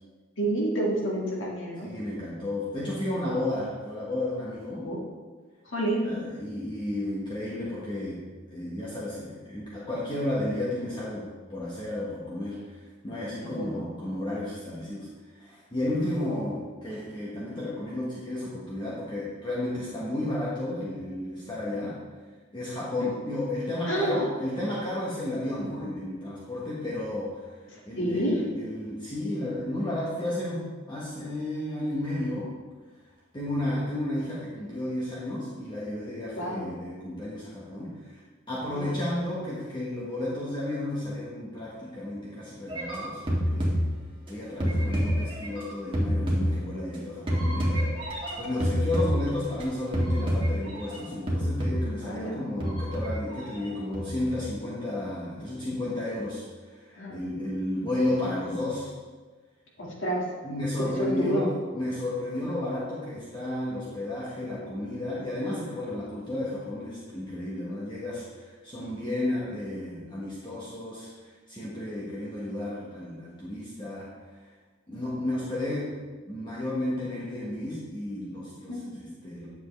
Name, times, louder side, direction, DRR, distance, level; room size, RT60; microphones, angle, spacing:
voice 1, 0.4-1.9 4.8-5.0 5.7-6.1 13.4-13.9 23.0-23.1 23.9-24.3 27.7-28.4 36.4-36.7 38.7-39.1 52.0-52.4 56.9-57.2 59.8-60.2 61.0-61.5 78.7-78.9, right 1 dB, 65° left, -3 dB, 2.0 m, -29 dB
voice 2, 1.8-4.9 6.0-8.2 8.5-22.0 22.5-32.5 33.3-38.2 38.5-43.7 44.3-47.8 48.4-58.9 60.4-74.1 74.9-75.9 76.2-79.5, left 1 dB, 25° left, -7 dB, 1.4 m, -32 dB
sound 1, 42.7-44.3 44.6-47.0 47.3-49.6 49.9-51.0 51.3-52.1 52.6-53.7 53.9-54.5, equal, 25° right, 1.9 m, -28 dB
9.7 x 7.1 x 3.3 m, 1.4 s
head